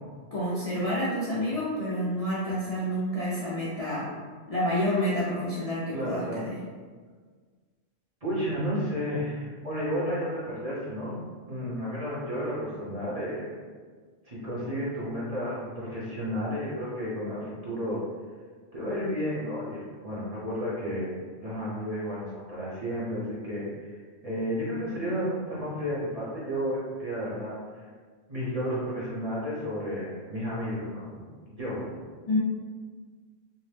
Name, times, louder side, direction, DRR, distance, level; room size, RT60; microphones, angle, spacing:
voice 1, 0.3-4.1 4.5-6.6 32.3-32.4, left 1 dB, 45° left, -9 dB, 0.5 m, -29 dB
voice 2, 5.9-6.5 8.2-13.6 14.3-18.0 18.7-23.9 24.2-27.9 28.3-32.0, equal, 40° right, -8 dB, 0.8 m, -32 dB
2.7 x 2.0 x 3.3 m, 1.5 s
omnidirectional pair, 1.1 m